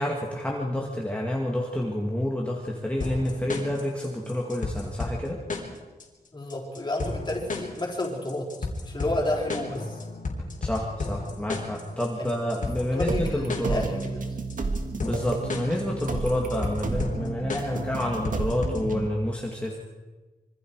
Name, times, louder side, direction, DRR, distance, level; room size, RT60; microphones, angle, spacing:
voice 1, 0.0-5.4 10.6-13.8 15.0-19.8, left 1 dB, 10° left, -2 dB, 2.2 m, -29 dB
sound 1, 3.0-19.0, left 3 dB, 55° left, 3.9 m, -34 dB
voice 2, 6.3-8.5 8.8-10.0 12.2-14.4, left 1 dB, 30° left, -1 dB, 4.5 m, -31 dB
sound 2, 13.1-19.1, right 3 dB, 60° right, 1.8 m, -32 dB
26.5 x 24.5 x 4.8 m, 1.3 s
wide cardioid pair, 170°, 16 cm